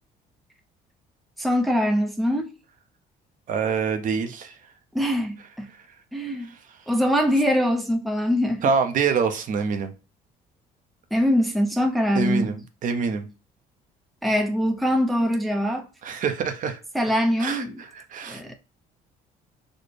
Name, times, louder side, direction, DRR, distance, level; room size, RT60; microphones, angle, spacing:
voice 1, 1.4-2.5 4.9-5.7 6.1-6.5 6.9-8.7 11.1-12.6 14.2-15.9 16.9-17.7 18.3-18.6, equal, ahead, 0.5 m, -23 dB
voice 2, 3.5-4.6 6.5-6.6 8.6-9.9 12.1-13.3 16.0-16.8 17.4-18.6, right 5 dB, 50° right, 0.6 m, -26 dB
4.2 x 2.0 x 3.1 m
cardioid pair, 110°, 17 cm